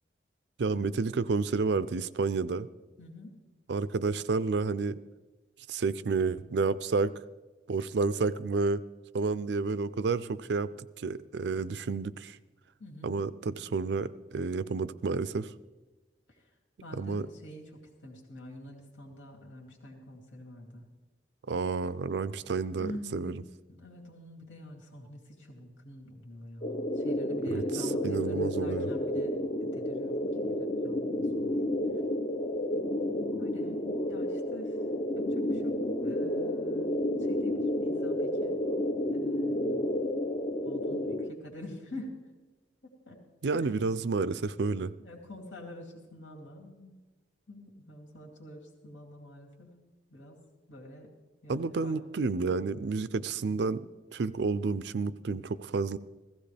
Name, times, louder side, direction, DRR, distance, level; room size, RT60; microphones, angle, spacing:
voice 1, 0.6-2.7 3.7-5.0 5.7-7.1 7.7-8.8 9.1-12.4 13.0-15.5 16.9-17.3 21.5-23.4 27.5-28.9 43.4-44.9 51.5-53.8 54.1-56.0, right 4 dB, 70° right, 16 dB, 0.4 m, -30 dB
voice 2, 3.0-3.3 12.8-13.2 16.3-16.5 16.8-20.8 22.8-31.6 33.4-33.8 34.1-34.8 35.1-38.6 39.1-39.8 40.6-42.2 42.8-43.3 43.5-44.0 45.0-47.0 47.5-49.8 50.1-50.4 50.7-51.1 51.4-52.0, left 1 dB, 90° left, -1 dB, 2.7 m, -47 dB
sound 1, 26.6-41.3, left 1 dB, 30° left, 0.5 m, -31 dB
16.0 x 15.0 x 3.4 m, 1.2 s
head